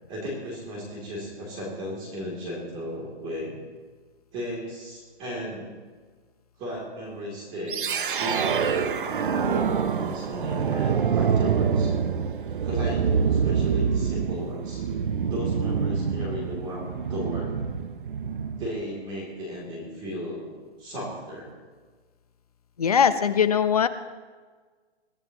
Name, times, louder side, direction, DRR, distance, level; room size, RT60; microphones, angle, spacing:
voice 1, 0.1-3.6 4.3-5.7 6.6-7.9 8.2-11.9 12.6-14.8 15.3-16.8 17.1-17.5 18.6-20.5 20.8-21.5, equal, 15° right, -3 dB, 3.0 m, -35 dB
sound 1, 7.7-18.8, right 6 dB, 50° right, 0.8 m, -26 dB
voice 2, 22.8-23.9, left 7 dB, 35° left, 11 dB, 0.6 m, -21 dB
22.5 x 14.0 x 3.0 m, 1.4 s
hypercardioid pair, 170°, 33 cm